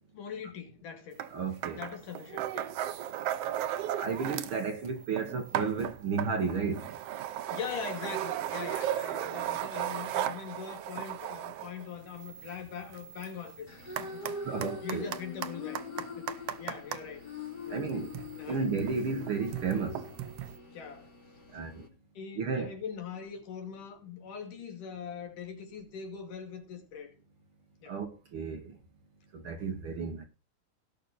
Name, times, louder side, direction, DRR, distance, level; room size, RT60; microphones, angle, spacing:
voice 1, 0.1-1.2 1.8-2.8 7.5-17.3 17.7-17.8 18.4-18.7 19.0-19.1 20.7-21.1 22.2-27.1 27.8-28.0, left 7 dB, 75° left, 3.9 m, -42 dB
sound 1, 1.2-1.3 1.6-4.7 5.0-17.0 17.8-20.6, right 11 dB, 70° right, 1.5 m, -36 dB
voice 2, 1.3-1.8 3.9-6.9 14.3-15.1 17.7-18.2 18.5-20.1 21.5-21.9 22.4-22.7 27.9-28.8 29.3-30.2, right 5 dB, 55° right, 1.7 m, -33 dB
sound 2, 13.7-21.9, left 3 dB, 35° left, 2.8 m, -43 dB
18.0 x 6.4 x 4.1 m
omnidirectional pair, 3.6 m